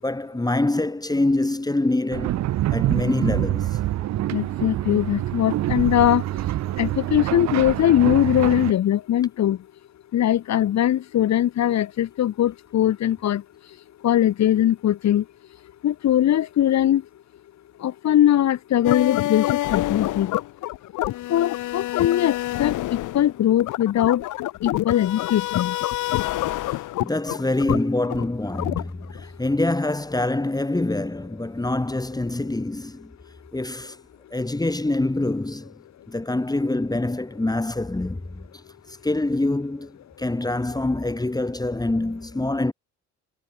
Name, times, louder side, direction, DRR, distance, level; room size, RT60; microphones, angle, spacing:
voice 1, 0.0-3.8 26.7-33.1 33.5-34.0 34.3-35.7 36.1-38.5 38.9-42.7, left 2 dB, 10° left, 3.0 m, -25 dB
sound 1, 2.1-8.7, right 14 dB, 65° right, 0.6 m, -26 dB
voice 2, 4.3-6.2 6.8-9.6 10.1-13.4 14.0-15.2 15.8-17.0 17.8-20.3 21.3-22.7 23.1-24.2 24.6-25.7, left 11 dB, 65° left, 1.5 m, -21 dB
sound 2, 18.8-29.2, left 16 dB, 85° left, 1.2 m, -27 dB
cardioid pair, 90°, 30 cm